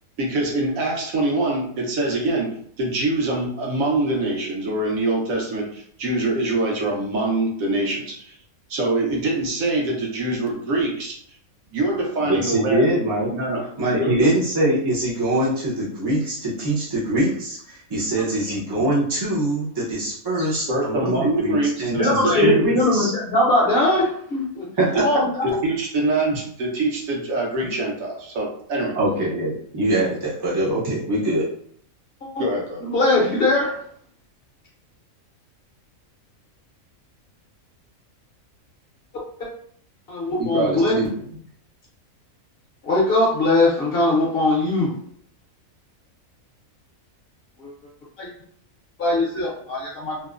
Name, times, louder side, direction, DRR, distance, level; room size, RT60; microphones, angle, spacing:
voice 1, 0.2-8.3 8.7-11.2 11.7-12.8 13.3-13.7 13.9-14.3 20.7-22.8 24.9-25.0 25.4-29.0 32.4-32.8, right 2 dB, 80° right, -1 dB, 1.1 m, -24 dB
voice 2, 12.3-13.3 13.8-23.1 24.8-25.0 28.9-31.4 40.4-41.1, right 1 dB, 35° right, -8 dB, 0.4 m, -23 dB
voice 3, 22.0-24.7 25.0-25.6 32.3-32.4 32.8-33.7 40.1-40.9 42.8-44.9 47.6-47.7 48.2-48.3 49.0-50.1, left 2 dB, 55° left, -4 dB, 0.8 m, -20 dB
2.9 x 2.0 x 2.3 m, 0.62 s
omnidirectional pair, 1.4 m